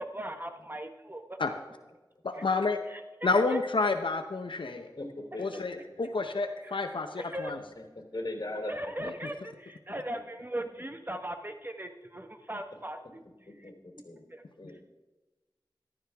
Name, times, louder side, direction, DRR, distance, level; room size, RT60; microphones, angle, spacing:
voice 1, 0.0-1.4 2.3-2.4 2.9-3.6 6.6-6.8 7.2-7.5 8.7-13.2 13.6-13.7 14.3-14.4, right 1 dB, 25° right, 6 dB, 1.1 m, -39 dB
voice 2, 2.2-2.8 3.2-4.9 5.4-7.6, left 3 dB, 90° left, 6 dB, 0.7 m, -29 dB
voice 3, 4.7-5.8 6.1-6.2 7.5-7.8 8.1-8.7 13.5-14.3 14.6-14.8, left 1 dB, 55° left, 3 dB, 3.0 m, -40 dB
14.5 x 13.0 x 3.5 m, 1.2 s
wide cardioid pair, 50°, 8 cm